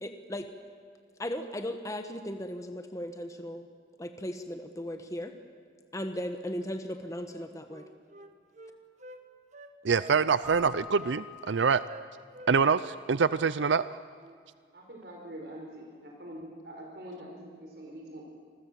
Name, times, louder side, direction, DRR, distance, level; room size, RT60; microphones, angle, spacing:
voice 1, 0.0-0.5 1.2-3.7 4.0-5.3 5.9-7.9, equal, 20° left, 6 dB, 1.3 m, -37 dB
Wind instrument woodwind instrument, 7.3-9.2 9.5-10.6 11.0-11.6 11.9-12.5 12.8-13.0 13.3-13.9 14.2-14.4, right 1 dB, 40° right, 1.6 m, -49 dB
voice 2, 9.8-11.8 12.5-13.8, right 5 dB, 85° right, 15 dB, 0.6 m, -25 dB
Keyboard (musical), 10.4-12.2, left 3 dB, 15° right, 1.4 m, -45 dB
voice 3, 14.7-18.2, right 1 dB, 60° right, 0 dB, 4.8 m, -44 dB
27.5 x 21.0 x 7.6 m, 2.1 s
head